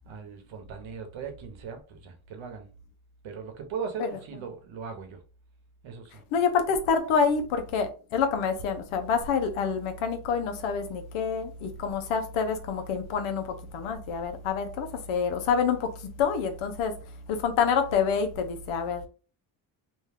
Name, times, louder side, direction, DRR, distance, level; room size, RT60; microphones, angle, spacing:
voice 1, 0.0-2.7 3.2-5.2 5.8-6.2, right 6 dB, 70° right, 1.0 m, -39 dB
voice 2, 6.3-16.9 17.3-19.1, left 6 dB, 75° left, 0.8 m, -27 dB
2.6 x 2.2 x 3.4 m
supercardioid pair, 75°, 49 cm